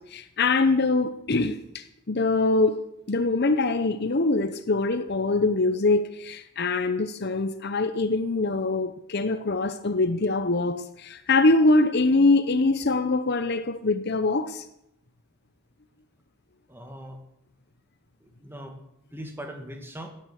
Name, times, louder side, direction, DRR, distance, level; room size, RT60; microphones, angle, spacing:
voice 1, 0.0-14.6, left 3 dB, 50° left, 0.8 m, -23 dB
voice 2, 16.7-17.2 18.2-18.8 19.1-20.1, equal, 10° right, 2.2 m, -40 dB
17.0 x 9.8 x 7.6 m
head